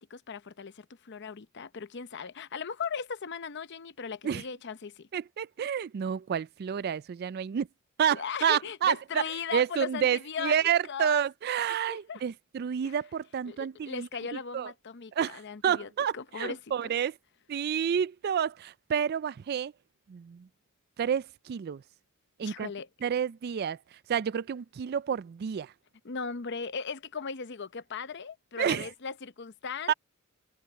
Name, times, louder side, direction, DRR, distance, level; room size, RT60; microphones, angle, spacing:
voice 1, 0.0-5.1 8.1-10.6 10.9-11.2 11.7-12.2 12.8-12.9 13.5-16.9 22.4-22.9 26.0-29.9, left 5 dB, 55° left, 0.7 m, -38 dB
voice 2, 5.1-7.7 8.0-9.2 9.5-14.1 14.5-14.7 15.1-17.2 17.5-19.7 20.1-20.5 21.0-21.8 22.4-22.7 23.0-25.7 28.6-28.9 29.9-30.0, right 8 dB, 45° right, 0.3 m, -29 dB
head